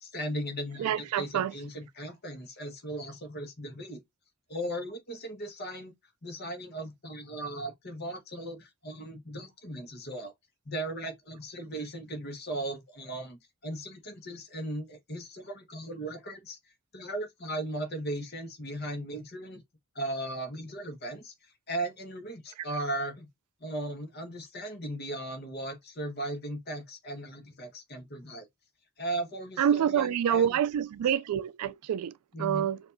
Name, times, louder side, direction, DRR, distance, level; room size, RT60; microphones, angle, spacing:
voice 1, 0.0-4.0 4.5-5.9 6.2-10.3 10.6-16.6 16.9-19.6 19.9-21.3 21.7-23.3 23.6-28.5 29.0-30.6 32.3-32.7, right 1 dB, 45° left, 1.2 m, -37 dB
voice 2, 0.8-1.5 29.6-32.1 32.4-32.8, right 9 dB, 85° right, 0.3 m, -27 dB
4.7 x 2.6 x 2.6 m
head